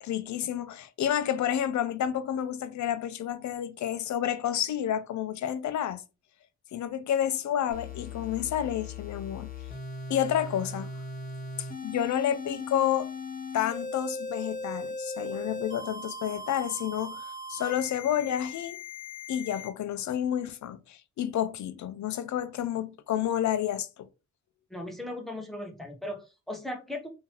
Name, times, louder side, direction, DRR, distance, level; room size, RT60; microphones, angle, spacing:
voice 1, 0.0-6.0 6.7-9.5 10.1-10.9 11.6-13.1 13.5-18.8 19.3-24.1, left 10 dB, 70° left, 0.5 m, -30 dB
Pitch Reference Square for Morphagene, 7.7-19.7, left 3 dB, 30° left, 0.9 m, -39 dB
voice 2, 24.7-27.1, left 1 dB, ahead, 0.7 m, -37 dB
3.7 x 2.7 x 2.8 m
wide cardioid pair, 150°, 30 cm